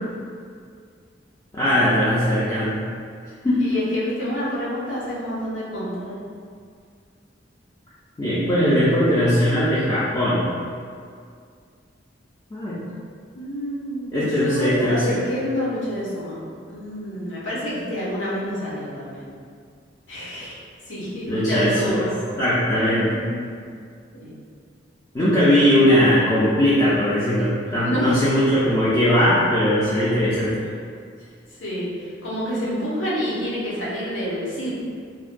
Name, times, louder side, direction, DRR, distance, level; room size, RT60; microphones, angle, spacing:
voice 1, 1.5-2.8 3.4-3.6 8.2-10.4 12.5-12.8 14.1-15.2 21.3-22.1 22.4-23.3 25.1-30.5, equal, 20° left, -10 dB, 0.4 m, -19 dB
voice 2, 3.6-6.2 13.3-16.4 16.7-19.3 20.1-20.6 20.9-22.1 22.7-23.6 24.1-24.3 27.6-28.2 31.6-34.7, equal, 80° left, -9 dB, 0.8 m, -28 dB
2.5 x 2.1 x 2.5 m, 2.2 s
head